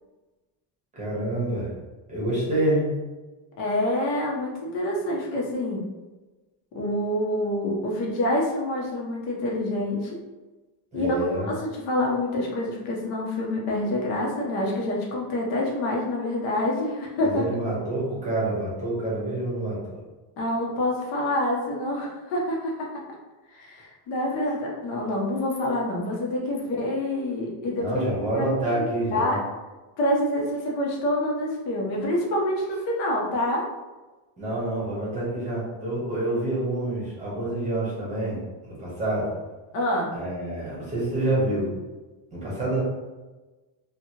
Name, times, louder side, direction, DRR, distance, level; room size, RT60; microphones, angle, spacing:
voice 1, 0.9-1.7 2.1-2.9 10.9-11.5 17.2-20.0 27.8-29.4 34.4-39.3 40.1-41.7 42.3-42.8, right 1 dB, 15° right, -7 dB, 0.8 m, -27 dB
voice 2, 3.6-5.8 6.7-10.2 10.9-17.4 20.4-22.9 23.5-28.1 28.3-28.8 29.1-29.4 30.0-33.7 39.7-40.1, left 1 dB, 80° left, -2 dB, 1.0 m, -27 dB
2.9 x 2.4 x 2.8 m, 1.2 s
cardioid pair, 170°, 48 cm